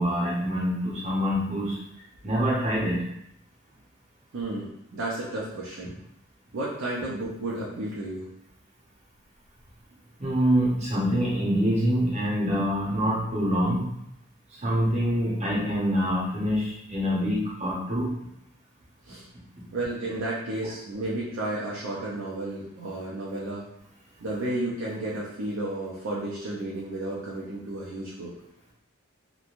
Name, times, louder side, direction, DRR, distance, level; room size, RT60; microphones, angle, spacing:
voice 1, 0.0-1.8 2.2-3.0 10.2-13.9 14.5-18.1, equal, 30° right, -5 dB, 0.7 m, -25 dB
voice 2, 4.3-5.9 6.5-8.3 19.0-19.2 19.7-23.7 24.2-28.3, right 2 dB, 75° right, -6 dB, 0.5 m, -32 dB
3.0 x 2.2 x 2.5 m, 0.78 s
head